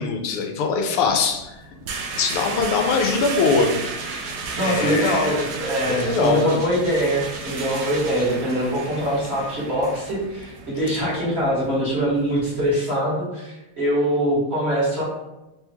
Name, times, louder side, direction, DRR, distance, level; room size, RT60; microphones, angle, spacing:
voice 1, 0.0-1.6 2.2-3.8 4.1-4.3 4.6-5.4 5.9-6.6, left 4 dB, 90° left, 3 dB, 1.5 m, -22 dB
sound 1, 1.1-12.7, right 4 dB, 80° right, 1.5 m, -34 dB
sound 2, 2.7-8.7 9.3-9.4, right 3 dB, 65° right, 1.2 m, -40 dB
voice 2, 4.6-15.0, equal, 35° right, -8 dB, 1.6 m, -23 dB
4.0 x 3.0 x 3.5 m, 0.97 s
omnidirectional pair, 2.3 m